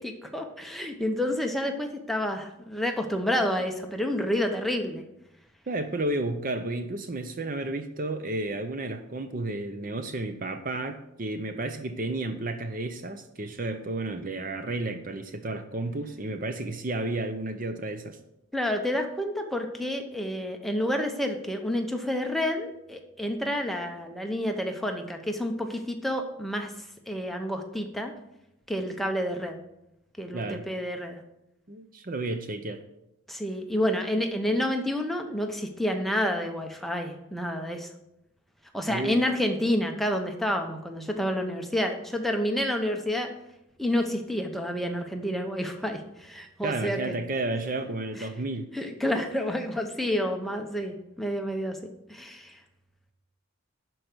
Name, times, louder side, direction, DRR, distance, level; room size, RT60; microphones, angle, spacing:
voice 1, 0.0-5.0 18.5-26.7 27.1-28.1 28.7-29.6 30.2-31.2 33.3-37.9 38.7-43.3 43.8-47.2 48.2-48.3 48.7-51.8 52.1-52.6, left 1 dB, ahead, 3 dB, 0.8 m, -29 dB
voice 2, 5.7-18.2 30.3-30.7 31.7-32.8 38.9-39.2 46.6-48.7, right 2 dB, 40° right, 8 dB, 0.6 m, -32 dB
11.5 x 4.6 x 6.1 m, 0.87 s
head